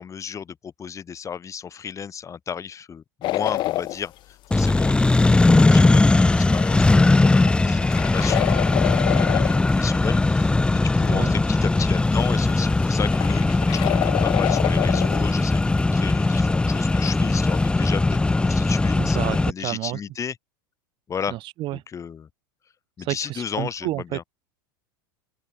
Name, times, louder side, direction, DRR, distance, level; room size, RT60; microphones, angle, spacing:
voice 1, 0.0-20.3 21.1-21.4 21.7-22.3 23.0-24.2, left 7 dB, 25° left, 6.7 m, -34 dB
sound 1, 3.2-4.0 4.7-5.1 5.6-5.7 5.9-6.0 6.4-9.9 10.9-11.0 11.2-11.3 11.8-11.9 12.3-16.4 16.7-17.1 17.4-17.6, left 16 dB, 45° left, 0.5 m, -27 dB
Accelerating revving vroom, 4.5-19.5, left 2 dB, 10° left, 0.8 m, -19 dB
voice 2, 19.0-20.0 21.3-21.8 23.0-24.2, right 16 dB, 45° right, 0.9 m, -30 dB
open air
hypercardioid pair, 110°, 12 cm